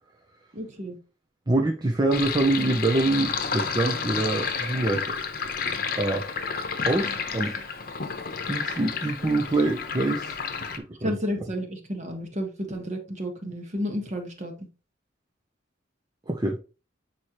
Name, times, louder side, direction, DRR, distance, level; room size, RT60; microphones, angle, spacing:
voice 1, 0.5-1.0 11.0-14.7, equal, 40° right, 1.6 m, -32 dB
voice 2, 1.5-5.1 5.9-6.2 6.8-7.5 8.5-10.4 10.8-11.1 16.3-16.6, right 2 dB, 20° right, 0.7 m, -25 dB
Sink (filling or washing), 2.1-10.8, left 5 dB, 50° left, 0.9 m, -31 dB
8.2 x 4.3 x 3.0 m
head